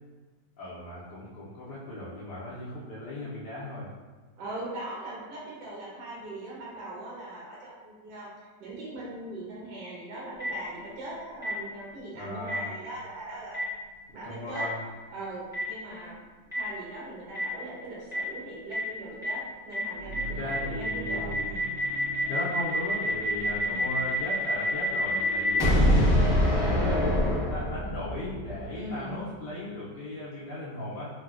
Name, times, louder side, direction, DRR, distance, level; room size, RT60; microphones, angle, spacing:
voice 1, 0.6-3.9 12.1-12.7 14.2-14.8 20.3-21.5 22.3-25.6 26.2-27.1 27.5-31.1, left 1 dB, 75° left, -9 dB, 1.1 m, -37 dB
voice 2, 4.4-8.3 8.6-13.6 14.1-14.7 15.1-21.8 23.6-24.0 25.6-25.9 28.7-29.3, right 2 dB, 75° right, -6 dB, 1.4 m, -40 dB
Boom, 10.4-10.5 11.4-11.5 12.5-12.6 13.5-13.6 14.5-14.6 15.5-15.6 16.5-16.6 17.3-17.4 18.1-18.2 18.7-18.8 19.2-19.3 19.7-19.8 20.1-20.2 20.5-28.0, left 1 dB, 5° right, 0.7 m, -25 dB
sound 1, 19.9-29.6, right 3 dB, 60° right, 1.2 m, -42 dB
3.8 x 2.1 x 2.3 m, 1.3 s
omnidirectional pair, 1.9 m